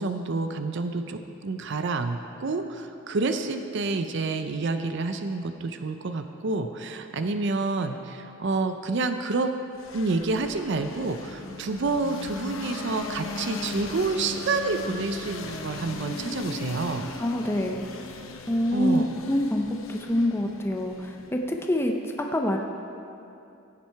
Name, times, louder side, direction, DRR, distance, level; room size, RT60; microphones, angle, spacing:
voice 1, 0.0-9.5 9.9-17.1 18.7-19.1, right 3 dB, 60° right, 8 dB, 0.5 m, -28 dB
sound 1, 9.8-21.5, left 3 dB, 80° left, 0.8 m, -38 dB
voice 2, 17.2-17.9 18.5-22.6, left 1 dB, 10° left, 2 dB, 0.5 m, -26 dB
15.5 x 7.4 x 4.6 m, 2.7 s
head